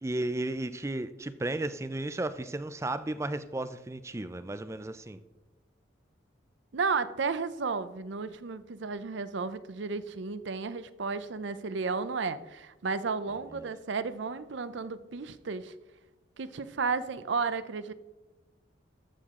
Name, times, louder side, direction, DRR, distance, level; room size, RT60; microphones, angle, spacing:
voice 1, 0.0-5.2 13.5-13.7, right 2 dB, 15° right, 13 dB, 0.4 m, -34 dB
voice 2, 6.7-15.7 16.4-17.9, right 4 dB, 70° right, 14 dB, 0.6 m, -33 dB
13.0 x 7.7 x 3.7 m, 1.1 s
head